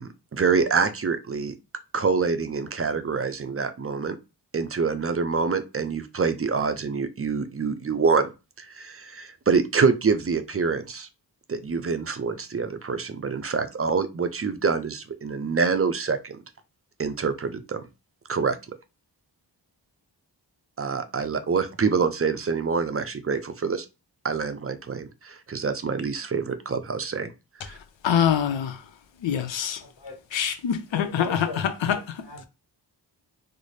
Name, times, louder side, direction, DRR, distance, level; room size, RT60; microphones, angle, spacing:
voice 1, 0.0-1.5 1.9-4.2 4.5-8.3 8.6-11.1 11.5-16.4 17.0-17.8 18.3-18.6 20.8-23.9 24.2-27.3 27.6-27.8, right 5 dB, 30° right, 0.5 m, -26 dB
voice 2, 28.0-28.8 29.2-29.8 30.3-31.5 31.8-32.0, left 8 dB, 85° left, 0.6 m, -24 dB
voice 3, 29.8-30.2 30.9-32.5, left 5 dB, 65° left, 1.4 m, -40 dB
4.0 x 2.0 x 3.2 m
cardioid pair, 60°, 44 cm